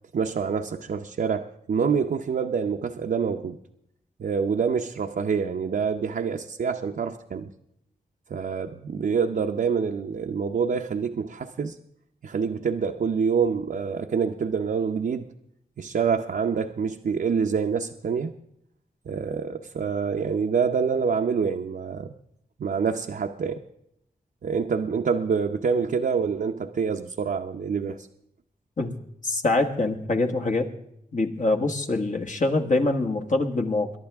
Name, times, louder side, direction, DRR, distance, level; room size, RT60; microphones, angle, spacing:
voice 1, 0.1-3.6 4.2-7.5 8.3-11.7 12.2-15.3 15.8-18.3 19.1-22.1 22.6-23.6 24.4-28.1, right 6 dB, 75° right, 2 dB, 0.7 m, -26 dB
voice 2, 29.2-30.7 31.1-33.9, left 2 dB, 55° left, 4 dB, 1.7 m, -24 dB
22.5 x 11.0 x 3.5 m, 0.74 s
cardioid pair, 65°, 15 cm